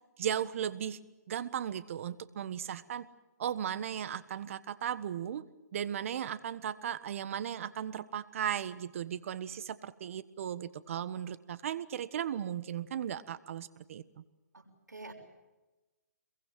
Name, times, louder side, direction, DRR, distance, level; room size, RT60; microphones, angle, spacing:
voice 1, 0.2-1.0 1.3-3.1 3.4-5.4 5.7-14.2, right 9 dB, 50° right, 15 dB, 1.4 m, -36 dB
voice 2, 14.5-15.1, right 3 dB, 90° right, 2 dB, 6.4 m, -48 dB
26.5 x 22.5 x 7.6 m, 1.1 s
hypercardioid pair, 145°, 9 cm